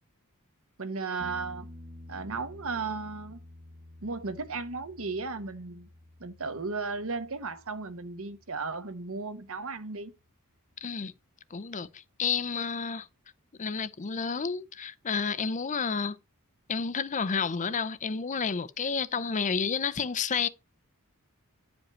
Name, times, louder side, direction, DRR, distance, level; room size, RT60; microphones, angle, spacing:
voice 1, 0.8-1.7 2.1-3.4 4.0-5.9 6.2-10.1, right 4 dB, 65° right, 1.1 m, -35 dB
sound 1, 1.2-8.8 11.8-11.9, left 1 dB, 20° right, 1.2 m, -50 dB
voice 2, 10.8-11.1 11.5-13.1 13.6-16.2 16.7-20.5, left 5 dB, 35° left, 0.6 m, -30 dB
10.5 x 5.2 x 4.3 m
head